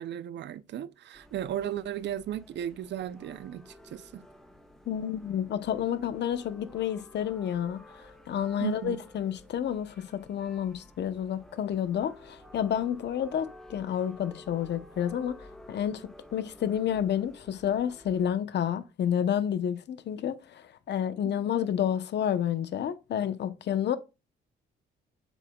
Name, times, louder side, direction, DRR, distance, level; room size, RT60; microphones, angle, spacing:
voice 1, 0.0-4.2 8.6-9.0 21.2-21.3, right 10 dB, 65° right, 0.5 m, -35 dB
sound 1, 1.1-18.3, left 1 dB, ahead, 1.2 m, -52 dB
voice 2, 4.9-24.0, left 9 dB, 60° left, 0.8 m, -30 dB
7.7 x 6.2 x 2.3 m
cardioid pair, 90°, 20 cm